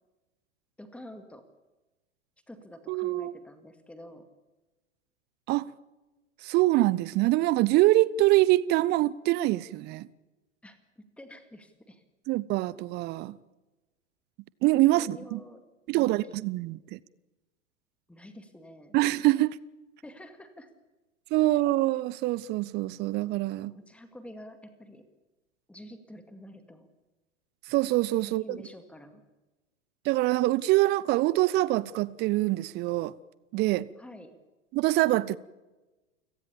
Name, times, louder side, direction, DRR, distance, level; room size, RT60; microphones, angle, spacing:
voice 1, 0.8-1.5 2.5-4.3 10.6-12.0 14.9-15.6 15.9-16.5 18.1-19.0 20.0-20.7 23.7-25.0 25.7-26.9 28.2-29.2 34.0-34.4, left 1 dB, 5° left, 2.1 m, -48 dB
voice 2, 2.9-3.3 5.5-5.7 6.4-10.1 12.3-13.4 14.6-15.4 15.9-17.0 18.9-19.6 21.3-23.7 27.7-28.6 30.0-33.1 33.5-33.9 34.7-35.4, right 17 dB, 30° right, 0.7 m, -25 dB
29.5 x 17.5 x 7.1 m
figure-of-eight pair, 95°, 37 cm